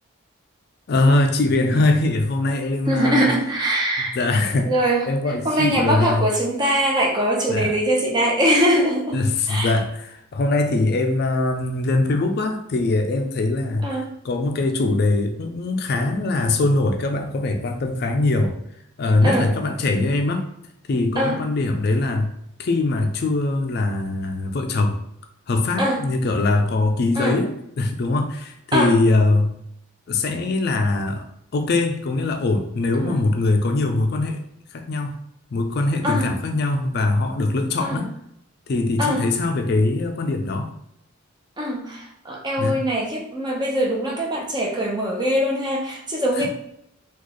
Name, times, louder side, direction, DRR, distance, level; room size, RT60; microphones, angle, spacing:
voice 1, 0.9-3.3 4.1-4.7 5.0-6.3 7.5-7.7 9.1-13.9 14.2-18.5 19.0-20.5 20.9-22.3 22.6-25.0 25.5-29.5 30.1-31.2 31.5-34.4 34.7-35.2 35.5-38.1 38.7-40.7 42.6-42.8 46.4-46.5, left 2 dB, 50° left, 4 dB, 0.4 m, -22 dB
voice 2, 2.9-4.2 4.7-5.1 5.4-9.2 9.5-9.7 13.8-14.1 19.2-19.5 21.2-21.4 25.8-26.0 27.2-27.4 28.7-28.9 33.0-33.2 36.0-36.3 37.8-38.0 39.0-39.3 41.6-46.5, equal, 20° right, -1 dB, 0.6 m, -22 dB
3.1 x 2.3 x 3.8 m, 0.76 s
head